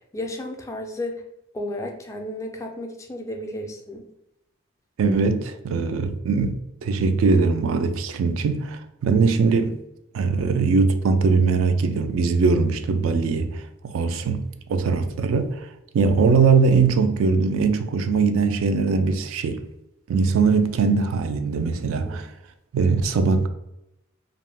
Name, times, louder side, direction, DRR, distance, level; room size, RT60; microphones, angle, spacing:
voice 1, 0.1-1.2 1.5-4.1 22.1-22.2, left 1 dB, 15° left, 0.3 m, -33 dB
voice 2, 5.0-9.8 10.1-15.7 15.9-19.6 20.1-22.3 22.7-23.5, right 4 dB, 75° right, 0.3 m, -21 dB
2.4 x 2.1 x 3.2 m
head